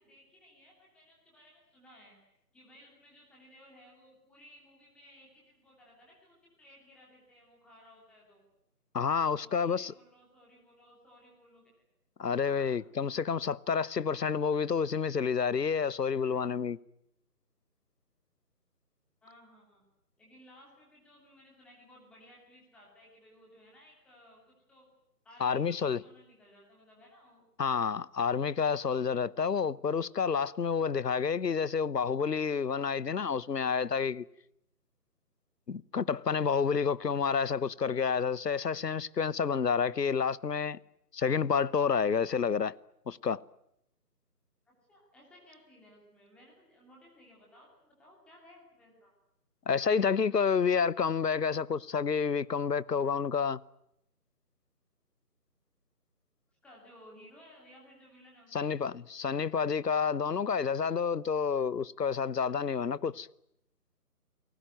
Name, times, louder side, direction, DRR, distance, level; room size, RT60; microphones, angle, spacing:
voice 1, 0.0-2.2 2.5-8.4 9.1-11.6 12.4-12.7 19.2-19.8 20.2-24.8 25.2-27.4 44.7-49.1 56.6-58.8, equal, ahead, 2.7 m, -58 dB
voice 2, 8.9-9.9 12.2-16.8 25.4-26.0 27.6-34.2 35.7-40.8 41.1-42.8 43.1-43.4 49.7-53.6 58.5-63.3, left 6 dB, 90° left, 1.0 m, -29 dB
28.5 x 19.5 x 9.1 m
figure-of-eight pair, 165°, 47 cm